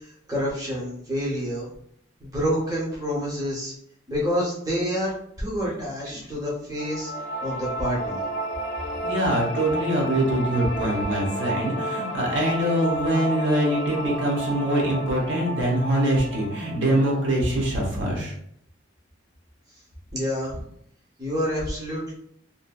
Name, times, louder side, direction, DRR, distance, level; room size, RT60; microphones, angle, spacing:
voice 1, 0.0-1.7 2.2-3.7 4.1-7.1 7.4-8.2 20.1-20.6 21.2-22.1, equal, 20° right, -4 dB, 0.7 m, -28 dB
sound 1, 6.8-17.8, right 1 dB, 70° left, 0.5 m, -32 dB
voice 2, 9.0-18.3, right 1 dB, 65° right, -3 dB, 0.9 m, -24 dB
2.6 x 2.6 x 2.3 m, 0.69 s
head